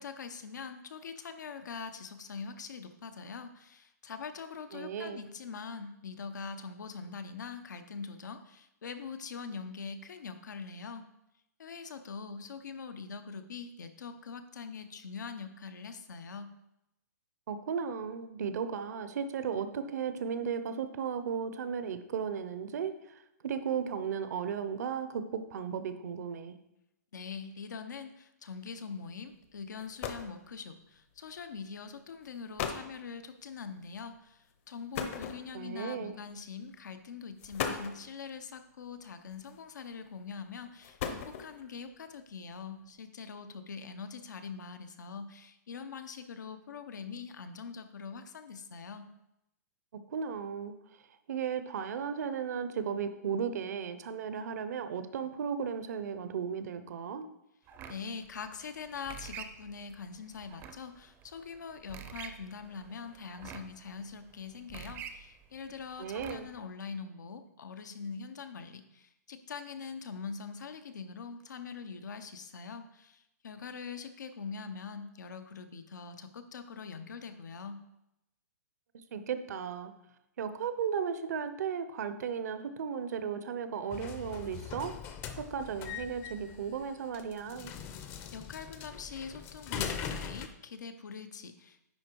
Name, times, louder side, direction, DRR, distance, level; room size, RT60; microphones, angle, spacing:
voice 1, 0.0-11.1 11.6-16.5 27.1-49.1 57.9-77.8 87.9-91.8, left 5 dB, 85° left, 9 dB, 0.8 m, -43 dB
voice 2, 4.7-5.2 17.5-26.6 35.5-36.2 50.1-50.7 51.3-57.3 66.0-66.5 79.1-79.9 80.4-84.9 85.4-87.7, right 7 dB, 65° right, 10 dB, 0.8 m, -35 dB
sound 1, 29.4-29.5 29.8-30.4 31.4-31.6 32.2-32.3 32.6-32.9 34.9-35.8 36.7-36.9 37.4-38.1 39.3-39.8 40.6-41.7, left 7 dB, 50° left, 0.9 m, -37 dB
sound 2, 57.7-66.6, right 8 dB, 20° right, 0.5 m, -48 dB
sound 3, 83.9-90.5, left 7 dB, 25° left, 0.6 m, -41 dB
9.8 x 3.8 x 4.6 m, 0.87 s
hypercardioid pair, 150°, 9 cm